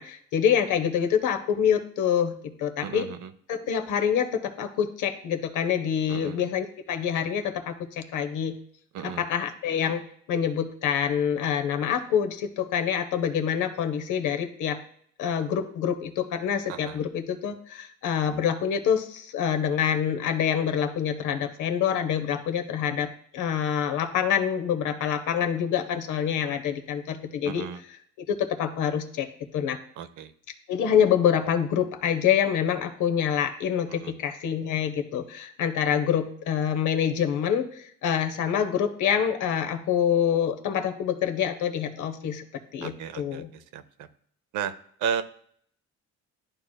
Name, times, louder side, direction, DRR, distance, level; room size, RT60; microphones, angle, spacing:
voice 1, 0.0-3.1 3.5-8.6 9.0-10.0 10.3-14.8 15.2-27.7 28.3-29.3 29.5-29.8 30.7-42.4 42.7-43.5, left 8 dB, 80° left, 6 dB, 0.8 m, -26 dB
voice 2, 2.8-3.3 6.1-6.4 8.9-9.2 16.7-17.0 27.5-27.8 30.0-30.3 33.9-34.1 42.8-43.4 43.7-44.1 44.5-44.7 45.0-45.2, right 7 dB, 85° right, 12 dB, 0.6 m, -33 dB
11.5 x 4.8 x 2.2 m, 0.63 s
cardioid pair, 90°, 30 cm